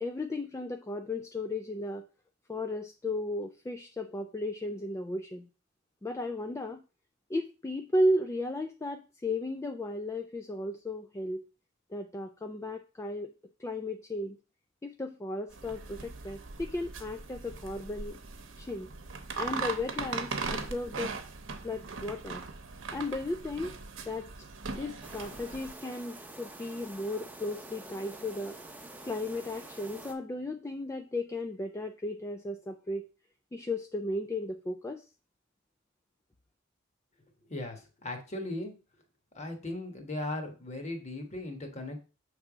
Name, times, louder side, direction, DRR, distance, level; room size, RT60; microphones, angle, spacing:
voice 1, 0.0-2.1 2.5-5.5 6.0-6.8 7.3-11.4 11.9-13.3 13.6-14.4 14.8-18.2 18.6-18.9 19.4-21.2 21.6-22.4 22.9-23.8 24.1-24.3 24.6-28.6 29.0-33.1 33.5-35.0, left 1 dB, 15° left, 6 dB, 0.3 m, -35 dB
sound 1, 15.5-25.7, right 4 dB, 80° right, 0.9 m, -39 dB
Silence in the forest, 25.0-30.1, right 2 dB, 10° right, 0.7 m, -47 dB
voice 2, 37.5-38.7 39.3-42.0, left 1 dB, 35° left, 4 dB, 1.3 m, -37 dB
6.3 x 3.4 x 4.9 m, 0.33 s
head